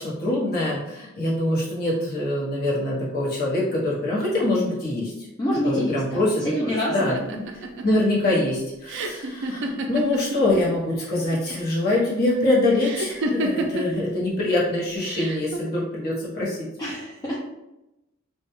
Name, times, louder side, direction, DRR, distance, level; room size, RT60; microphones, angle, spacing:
voice 1, 0.0-5.1 5.6-7.4 7.8-16.7, left 1 dB, 50° left, -5 dB, 0.8 m, -24 dB
voice 2, 5.4-7.2 16.8-17.4, equal, 20° left, -6 dB, 0.3 m, -27 dB
sound 1, 7.2-10.7 11.0-11.7 12.8-14.0 15.0-15.6, right 1 dB, 60° right, 0.3 m, -29 dB
2.2 x 2.1 x 2.9 m, 0.94 s
head